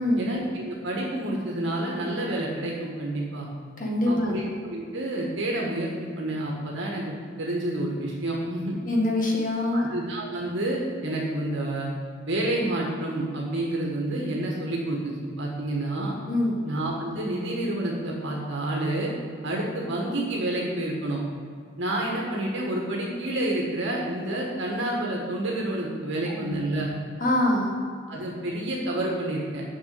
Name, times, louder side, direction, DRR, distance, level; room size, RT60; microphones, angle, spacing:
voice 1, 0.2-3.5 4.1-5.9 6.2-7.1 7.4-8.8 9.7-11.9 12.3-16.1 16.6-19.1 19.4-21.2 21.8-26.9 28.1-29.6, right 1 dB, 60° right, -2 dB, 1.6 m, -29 dB
voice 2, 3.8-4.4 8.9-9.8 16.3-16.6 26.4-26.6 27.2-27.8, left 1 dB, 40° left, -1 dB, 1.8 m, -24 dB
7.3 x 6.2 x 7.7 m, 2.2 s
head